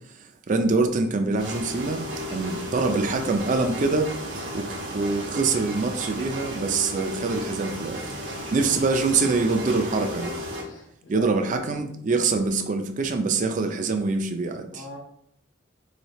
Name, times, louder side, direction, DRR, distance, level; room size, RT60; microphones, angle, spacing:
voice 1, 0.5-2.0 2.3-4.1 4.5-8.0 8.5-10.3 11.1-14.9, right 3 dB, 40° right, 6 dB, 0.4 m, -24 dB
sound 1, 1.4-10.6, equal, 80° right, 1.0 m, -34 dB
voice 2, 10.6-11.3 14.7-15.0, left 2 dB, 75° left, -1 dB, 0.7 m, -41 dB
3.2 x 2.7 x 4.1 m, 0.70 s
head